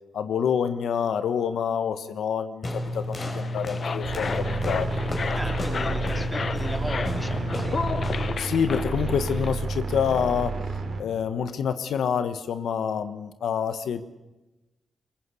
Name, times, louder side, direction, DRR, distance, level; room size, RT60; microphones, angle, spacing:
voice 1, 0.1-4.9 8.4-10.6 11.0-14.0, left 7 dB, 80° left, 10 dB, 1.3 m, -27 dB
sound 1, 2.6-8.4, left 1 dB, 35° left, 5.0 m, -31 dB
sound 2, 3.3-9.5, left 5 dB, 55° left, 0.9 m, -33 dB
sound 3, 4.0-11.0, right 4 dB, 60° right, 3.5 m, -31 dB
voice 2, 5.3-7.8, equal, ahead, 5 dB, 3.1 m, -36 dB
22.0 x 20.5 x 8.3 m, 1.0 s
cardioid pair, 70°, 0 cm